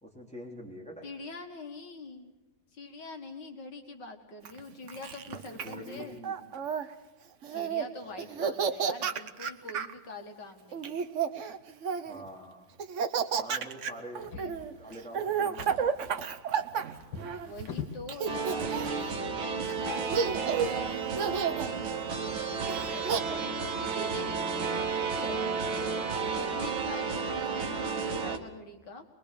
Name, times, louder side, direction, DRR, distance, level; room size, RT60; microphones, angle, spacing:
voice 1, 0.0-1.1 5.5-6.4 8.0-8.6 12.0-12.7 13.4-14.2 14.8-16.4 18.3-18.6 25.1-25.6, equal, 5° left, -2 dB, 3.3 m, -46 dB
voice 2, 1.0-2.3 2.7-6.2 7.5-10.9 14.3-14.5 17.4-24.5 25.0-25.4 25.8-29.0, left 2 dB, 60° left, 4 dB, 2.3 m, -44 dB
Laughter, 4.4-6.8 7.4-7.9 8.2-9.9 10.7-12.2 12.8-17.7 18.1-19.0 19.7-19.8 20.1-20.8 21.2-21.7 22.7-23.2, right 7 dB, 50° right, 1.0 m, -31 dB
Drawer open or close, 14.1-15.1 15.4-18.1 18.9-19.1 19.5-19.6, left 6 dB, 80° left, 2.4 m, -43 dB
sound 1, 18.3-28.4, right 5 dB, 90° right, 2.2 m, -32 dB
22.5 x 22.5 x 6.9 m, 1.0 s
omnidirectional pair, 2.1 m